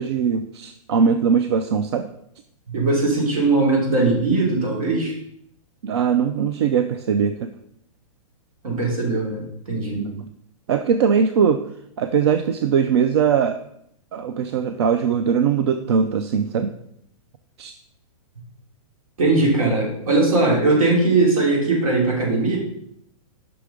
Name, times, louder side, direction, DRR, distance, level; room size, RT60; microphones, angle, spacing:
voice 1, 0.0-2.1 5.8-7.5 9.9-10.2 10.7-11.6 12.0-13.6 14.1-16.7 17.6-17.7, right 7 dB, 50° right, 9 dB, 0.4 m, -20 dB
voice 2, 2.7-5.1 8.6-9.4 9.7-10.0 19.2-22.6, right 3 dB, 80° right, -2 dB, 2.8 m, -19 dB
5.9 x 4.9 x 5.0 m, 0.72 s
hypercardioid pair, 170°, 18 cm